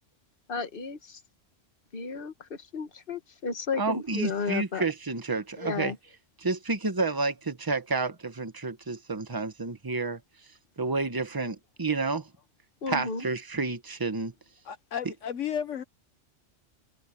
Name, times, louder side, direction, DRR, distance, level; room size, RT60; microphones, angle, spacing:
voice 1, 0.5-1.2 1.9-4.8 5.6-6.0 12.8-13.3, left 4 dB, 45° left, 1.6 m, -33 dB
voice 2, 3.8-5.9 6.4-10.2 10.8-12.3 12.9-14.3, right 3 dB, 20° right, 1.2 m, -30 dB
voice 3, 14.6-15.8, left 8 dB, 75° left, 1.3 m, -33 dB
omnidirectional pair, 1.3 m